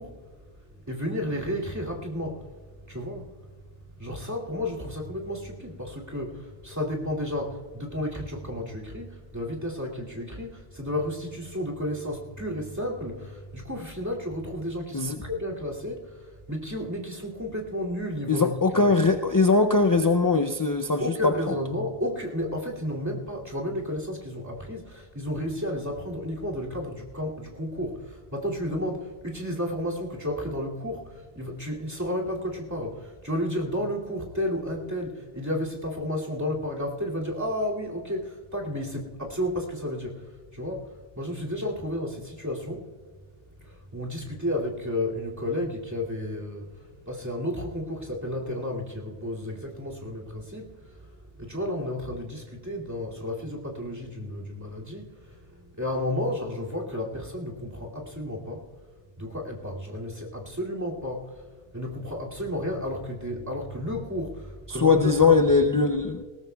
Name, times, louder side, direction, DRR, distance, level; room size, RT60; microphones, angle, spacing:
voice 1, 0.0-3.5 3.8-19.0 21.0-42.9 43.5-58.7 59.2-65.9, left 1 dB, 15° right, -2 dB, 2.4 m, -32 dB
voice 2, 18.3-21.1 21.5-21.6 64.7-66.2, left 4 dB, 35° left, 6 dB, 0.3 m, -21 dB
20.0 x 18.0 x 2.3 m, 1.5 s
omnidirectional pair, 1.1 m